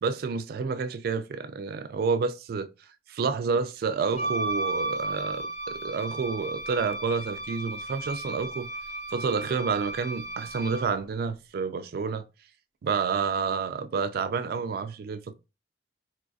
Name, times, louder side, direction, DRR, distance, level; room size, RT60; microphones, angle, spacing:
voice 1, 0.0-2.7 3.1-8.7 9.1-12.2 12.8-15.3, right 5 dB, 60° right, 0.3 m, -29 dB
Wind instrument woodwind instrument, 4.1-10.9, right 2 dB, 40° left, 0.7 m, -34 dB
4.0 x 2.5 x 2.3 m
head